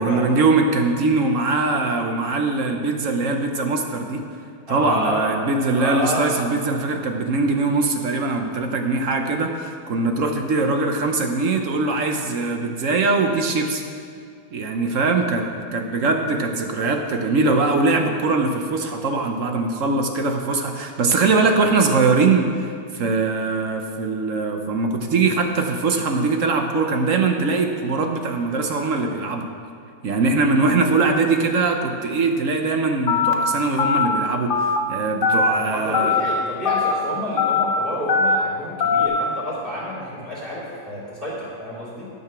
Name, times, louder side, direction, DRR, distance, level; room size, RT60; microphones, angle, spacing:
voice 1, 0.0-4.2 4.7-13.8 14.5-15.5 15.7-29.5 30.0-36.2, right 3 dB, 55° right, 4 dB, 1.1 m, -21 dB
voice 2, 4.7-5.3 5.7-6.3 35.6-42.1, equal, 30° right, -7 dB, 3.4 m, -29 dB
Telephone, 33.1-33.3 33.8-34.0 34.5-34.8 35.2-35.5 35.9-36.2 36.6-36.9 37.4-37.6 38.1-38.4 38.8-39.1, left 6 dB, 50° left, 0.6 m, -19 dB
12.0 x 6.8 x 6.0 m, 2.3 s
omnidirectional pair, 1.8 m